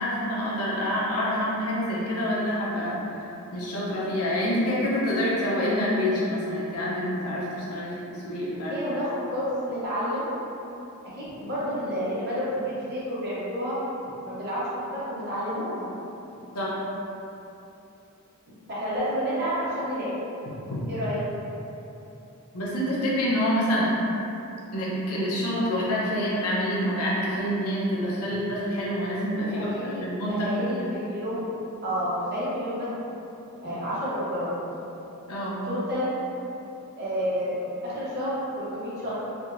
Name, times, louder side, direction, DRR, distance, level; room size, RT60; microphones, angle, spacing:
voice 1, 0.0-3.0 3.5-8.7 16.5-16.8 20.7-20.8 22.5-23.9 24.7-30.9 35.3-35.6, equal, 85° left, -6 dB, 0.8 m, -27 dB
voice 2, 8.7-10.2 11.2-13.8 14.2-15.9 18.7-20.1 20.9-21.2 29.5-31.4 31.8-32.9 33.6-34.5 35.7-36.1 37.0-37.6 37.8-39.1, equal, 50° right, -10 dB, 1.1 m, -30 dB
3.5 x 2.8 x 2.5 m, 2.9 s
head